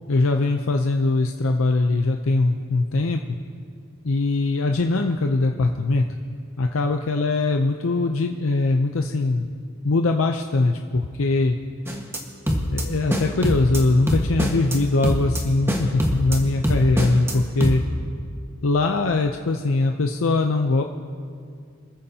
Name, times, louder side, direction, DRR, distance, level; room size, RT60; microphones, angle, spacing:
voice 1, 0.1-3.4 4.0-6.1 6.6-9.5 9.8-11.6 12.7-17.8 18.6-20.8, left 3 dB, 70° left, 4 dB, 0.6 m, -21 dB
sound 1, 11.9-12.2 12.5-12.8 13.1-13.8 14.1-14.8 15.0-15.4 15.7-16.4 16.6-17.3 17.6-17.8, equal, 10° right, 1.4 m, -23 dB
26.0 x 14.0 x 2.8 m, 2.2 s
head